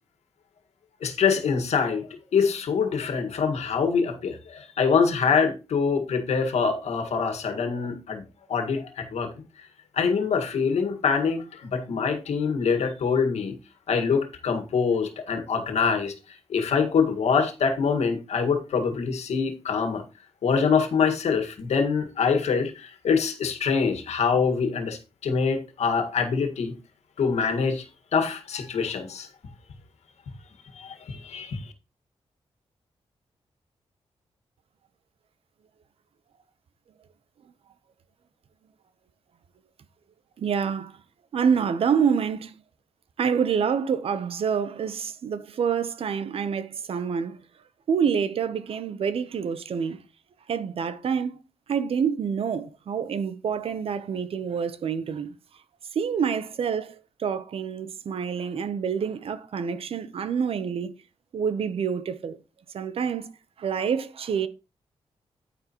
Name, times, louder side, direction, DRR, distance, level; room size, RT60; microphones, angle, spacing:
voice 1, 1.0-8.2 8.5-9.3 9.9-13.6 13.9-16.1 16.5-20.0 20.4-26.7 27.2-27.8 28.1-29.3 30.7-31.7, left 5 dB, 85° left, 1.8 m, -25 dB
voice 2, 40.4-40.9 41.3-42.5 43.2-47.4 47.9-50.0 50.5-51.4 51.7-55.4 55.9-61.0 61.3-62.4 62.7-63.3 63.6-64.5, right 7 dB, 60° right, 0.8 m, -27 dB
9.6 x 9.5 x 3.0 m
wide cardioid pair, 180°, 11 cm